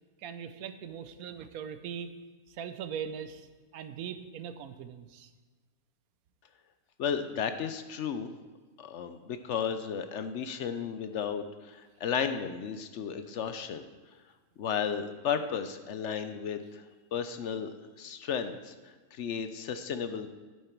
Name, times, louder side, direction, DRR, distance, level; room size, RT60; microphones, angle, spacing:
voice 1, 0.2-2.1 2.5-3.5 3.7-5.3, right 8 dB, 90° right, 10 dB, 1.2 m, -40 dB
voice 2, 7.0-8.3 8.8-13.9 14.6-16.8 17.1-17.7 18.0-20.3, left 7 dB, 65° left, 9 dB, 0.8 m, -34 dB
11.0 x 7.9 x 4.5 m, 1.3 s
omnidirectional pair, 1.5 m